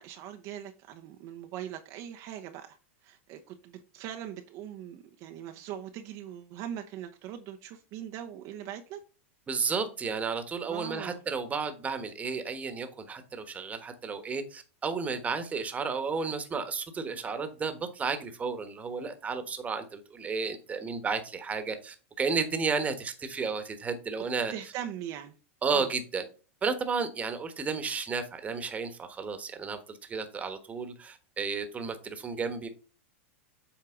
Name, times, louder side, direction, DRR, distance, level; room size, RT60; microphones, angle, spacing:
voice 1, 0.0-2.8 3.0-9.0 10.7-11.2 24.5-25.3 25.7-25.9, right 10 dB, 50° right, 0.8 m, -41 dB
voice 2, 9.5-24.5 25.6-26.2 26.6-32.7, right 5 dB, 20° right, 1.3 m, -32 dB
7.8 x 4.6 x 3.8 m
hypercardioid pair, 120°, 7 cm